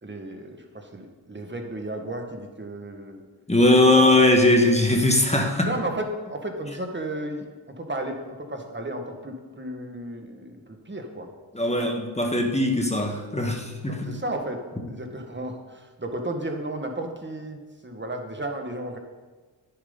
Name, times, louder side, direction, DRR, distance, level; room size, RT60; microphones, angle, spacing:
voice 1, 0.0-3.2 5.6-11.3 11.7-11.9 13.7-19.0, right 1 dB, 25° right, 4 dB, 1.9 m, -34 dB
voice 2, 3.5-5.7 11.5-14.2, left 1 dB, 15° left, 2 dB, 1.7 m, -20 dB
10.0 x 9.6 x 4.1 m, 1.3 s
cardioid pair, 55°, 46 cm